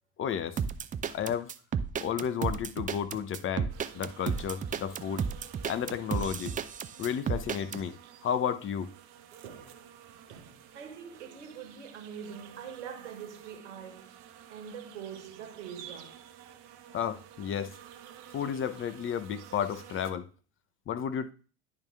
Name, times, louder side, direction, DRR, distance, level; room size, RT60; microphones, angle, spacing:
voice 1, 0.2-0.6 1.1-1.5 2.0-5.3 5.7-6.5 7.0-8.9 16.9-17.7 18.3-20.3 20.9-21.3, left 8 dB, 35° left, 0.7 m, -32 dB
sound 1, 0.6-7.8, right 7 dB, 25° right, 0.5 m, -32 dB
sound 2, 3.7-20.1, right 9 dB, 55° right, 0.9 m, -52 dB
voice 2, 9.4-14.2 14.5-16.2, right 7 dB, 75° right, 1.4 m, -44 dB
10.5 x 3.8 x 3.5 m
figure-of-eight pair, 60°, 35 cm